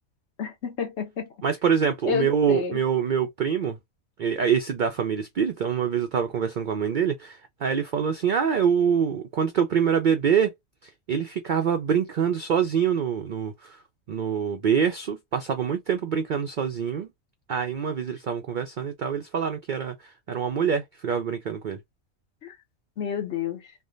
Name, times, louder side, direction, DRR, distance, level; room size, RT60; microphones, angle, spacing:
voice 1, 0.4-1.3 2.1-2.8 22.4-22.6 23.0-23.6, left 7 dB, 60° left, 1.0 m, -30 dB
voice 2, 1.4-3.8 4.2-10.5 10.8-13.8 14.1-17.1 17.5-21.8, right 7 dB, 75° right, 0.4 m, -25 dB
3.3 x 2.2 x 2.4 m
omnidirectional pair, 1.4 m